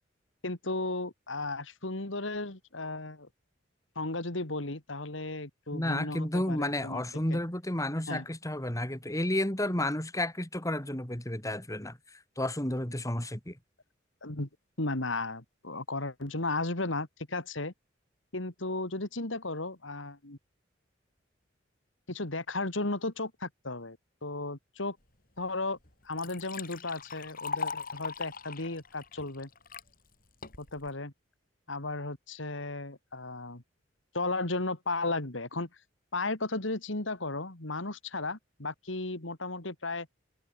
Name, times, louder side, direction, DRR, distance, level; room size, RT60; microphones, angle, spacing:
voice 1, 0.4-3.3 3.9-7.0 7.3-7.4 8.1-8.2 14.2-14.5 14.8-17.7 18.3-20.4 22.1-25.0 25.4-25.8 26.0-29.5 30.6-31.1 31.7-33.6 34.1-35.7 36.1-40.1, left 2 dB, 75° left, 3.0 m, -35 dB
voice 2, 5.7-12.0 12.4-13.6, left 1 dB, 15° left, 3.9 m, -31 dB
Liquid, 25.4-25.5 25.8-29.9 30.4-30.9, left 5 dB, 50° left, 5.2 m, -39 dB
head